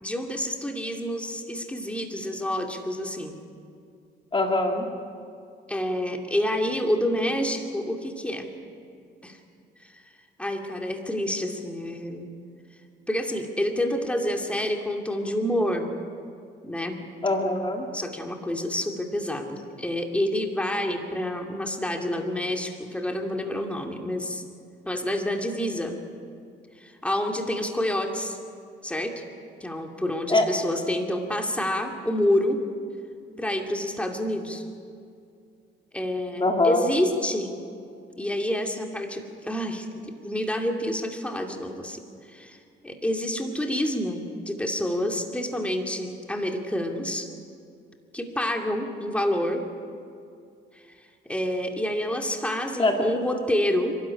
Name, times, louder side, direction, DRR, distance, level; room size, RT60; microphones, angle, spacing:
voice 1, 0.0-3.4 5.7-8.5 9.2-9.4 9.8-10.0 10.4-12.3 13.1-15.9 16.6-17.0 17.9-24.4 24.9-26.0 26.8-28.4 28.8-29.2 29.6-32.6 33.4-34.6 35.9-37.5 38.2-42.6 42.8-47.3 48.1-49.6 50.7-50.9 51.3-54.0, left 1 dB, 5° left, 3 dB, 2.6 m, -28 dB
voice 2, 4.3-4.9 17.2-17.9 30.3-30.5 36.4-36.9 52.8-53.1, left 2 dB, 25° left, 2 dB, 2.4 m, -23 dB
28.5 x 13.0 x 9.9 m, 2.4 s
cardioid pair, 90°, 20 cm